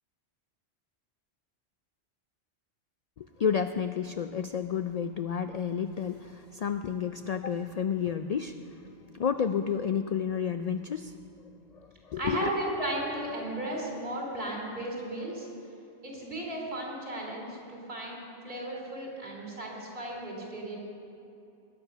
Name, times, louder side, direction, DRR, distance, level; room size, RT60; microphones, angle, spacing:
voice 1, 3.2-8.8 9.1-11.1 11.7-12.5, left 7 dB, 70° left, 9 dB, 0.3 m, -31 dB
voice 2, 12.2-15.5 16.0-20.8, right 1 dB, 50° right, -1 dB, 3.4 m, -35 dB
20.5 x 9.4 x 5.7 m, 2.7 s
omnidirectional pair, 1.2 m